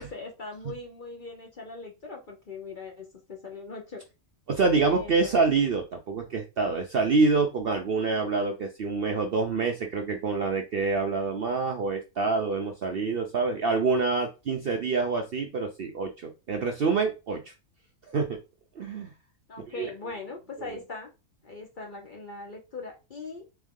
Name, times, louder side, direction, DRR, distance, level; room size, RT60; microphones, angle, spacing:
voice 1, 0.0-4.0 4.8-5.4 14.6-14.7 19.5-21.1 21.4-23.4, left 3 dB, 40° left, 1 dB, 0.9 m, -40 dB
voice 2, 4.5-17.4 18.1-18.4 18.8-19.1 19.8-19.9, right 4 dB, 55° right, 3 dB, 0.7 m, -26 dB
3.6 x 3.5 x 3.7 m, 0.28 s
omnidirectional pair, 1.5 m